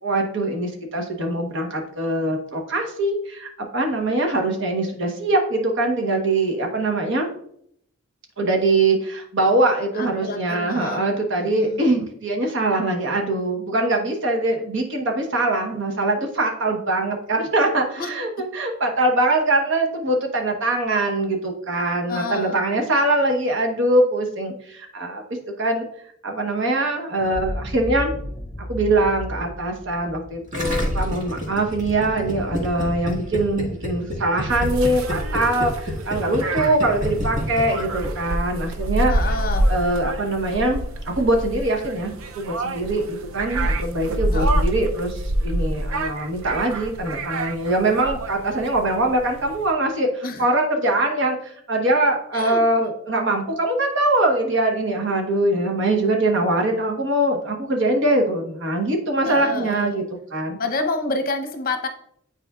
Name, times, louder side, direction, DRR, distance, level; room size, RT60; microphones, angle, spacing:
voice 1, 0.0-7.3 8.4-25.2 25.6-25.8 26.2-28.2 28.6-39.1 39.7-60.0 60.3-60.6, right 2 dB, 65° right, 2 dB, 1.1 m, -22 dB
voice 2, 9.9-11.0 11.4-11.8 18.0-18.1 22.1-22.6 39.1-39.7 44.3-44.5 50.2-50.4 52.3-52.8 59.3-60.0 60.6-61.9, left 3 dB, 45° left, 7 dB, 0.8 m, -28 dB
sound 1, 27.2-31.9, equal, 10° left, 1.5 m, -34 dB
Gurgling, 30.5-38.1 38.3-38.4, left 1 dB, 40° right, 1.6 m, -28 dB
sound 2, 34.5-49.7, right 1 dB, 80° right, 0.5 m, -27 dB
9.6 x 4.3 x 2.4 m, 0.68 s
head